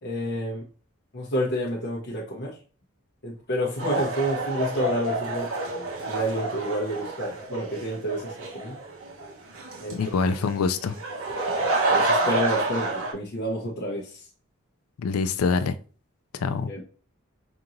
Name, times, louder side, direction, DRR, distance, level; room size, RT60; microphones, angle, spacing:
voice 1, 0.0-0.6 1.1-2.5 3.2-5.5 6.1-8.8 9.8-10.0 11.9-12.9 13.1-14.2 16.7-16.8, equal, 50° left, 0.8 m, -29 dB
sound 1, 3.8-13.1, right 2 dB, 75° right, 1.1 m, -28 dB
voice 2, 9.9-11.0 15.0-15.7 16.3-16.7, left 4 dB, 90° left, 0.4 m, -25 dB
5.2 x 2.8 x 2.5 m
head